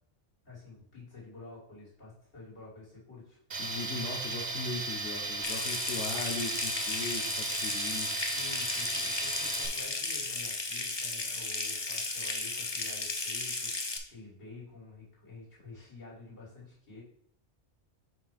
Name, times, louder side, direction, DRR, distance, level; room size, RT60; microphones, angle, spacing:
voice 1, 0.4-3.4 8.3-17.0, left 3 dB, 70° left, -8 dB, 3.4 m, -49 dB
Tools, 3.5-9.7, right 3 dB, 40° right, 1.0 m, -36 dB
voice 2, 3.6-8.1, left 3 dB, 90° left, -2 dB, 1.3 m, -39 dB
Water tap faucet / Sink (filling or washing) / Trickle dribble, 5.4-14.0, left 3 dB, 30° left, 0.6 m, -35 dB
7.6 x 2.8 x 5.8 m, 0.69 s
omnidirectional pair, 1.2 m